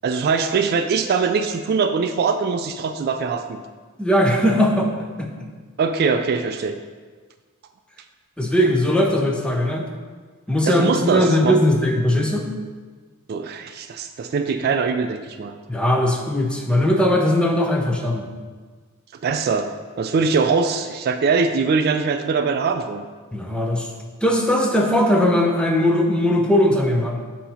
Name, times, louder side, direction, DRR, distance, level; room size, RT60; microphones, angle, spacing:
voice 1, 0.0-3.6 5.8-6.8 10.7-11.6 13.3-15.5 19.2-23.0, right 5 dB, 45° right, 7 dB, 0.3 m, -22 dB
voice 2, 4.0-4.9 5.2-5.5 8.4-9.9 10.5-12.5 15.7-18.3 23.3-23.9 24.2-27.2, left 1 dB, 5° left, 1 dB, 0.6 m, -19 dB
7.9 x 2.8 x 5.6 m, 1.5 s
head